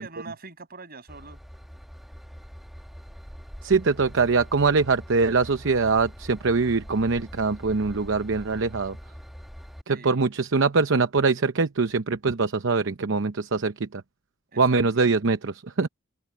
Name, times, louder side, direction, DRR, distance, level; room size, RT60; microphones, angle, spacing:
voice 1, 0.0-1.4 9.9-10.3 14.5-14.8, right 4 dB, 50° right, 7.0 m, -43 dB
Train / Engine, 1.1-9.8, equal, ahead, 1.3 m, -43 dB
voice 2, 3.6-9.0 10.0-14.0 14.6-15.9, right 4 dB, 65° right, 0.8 m, -23 dB
head